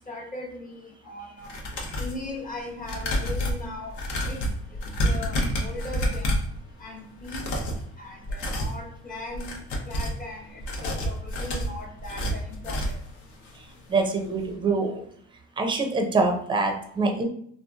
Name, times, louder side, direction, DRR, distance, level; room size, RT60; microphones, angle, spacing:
voice 1, 0.1-1.6 2.0-4.0 4.3-4.4 5.0-6.3 6.8-7.5 8.0-9.5 9.8-13.0, left 2 dB, 25° left, -2 dB, 1.0 m, -39 dB
sound 1, 1.4-2.2 2.8-6.6 7.2-7.8 8.2-8.8 9.3-10.2 10.6-13.1 13.5-13.6 13.9-14.0, equal, 70° left, 0.8 m, -29 dB
voice 2, 13.9-15.0 15.6-17.2, right 3 dB, 15° right, 3 dB, 0.5 m, -24 dB
2.8 x 2.5 x 2.3 m, 0.63 s
supercardioid pair, 90°, 31 cm